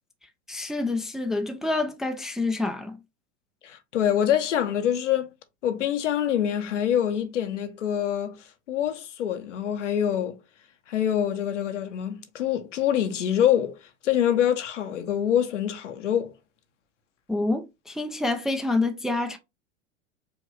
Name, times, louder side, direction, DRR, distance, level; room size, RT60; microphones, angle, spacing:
voice 1, 0.5-3.0 17.3-19.4, left 2 dB, ahead, 0.4 m, -27 dB
voice 2, 3.6-5.3 5.6-8.4 8.7-10.4 10.9-13.8 14.0-16.3, left 10 dB, 80° left, 0.9 m, -25 dB
4.8 x 2.6 x 3.2 m
hypercardioid pair, 95°, 36 cm